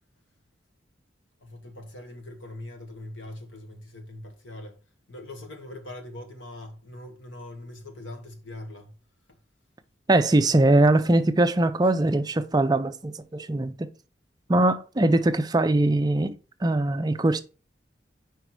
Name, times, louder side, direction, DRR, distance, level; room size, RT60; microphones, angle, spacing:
voice 1, 1.4-4.8 5.1-8.9, left 1 dB, 90° left, 1.7 m, -42 dB
voice 2, 10.1-13.9 14.5-16.3 16.6-17.4, right 2 dB, 20° right, 0.4 m, -21 dB
5.0 x 4.6 x 5.9 m
head